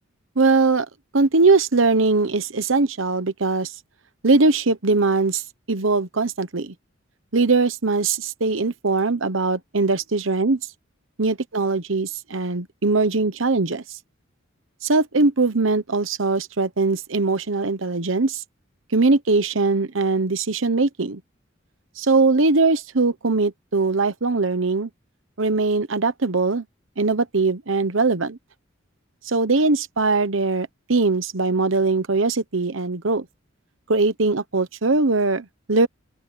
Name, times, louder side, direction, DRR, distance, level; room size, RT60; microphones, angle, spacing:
voice 1, 0.4-0.9 1.1-3.7 4.2-5.4 5.7-6.7 7.3-10.6 11.2-13.8 14.8-18.4 18.9-21.2 22.0-24.9 25.4-26.6 27.0-28.4 29.2-33.3 33.9-35.9, right 3 dB, 75° right, 1.1 m, -21 dB
open air
head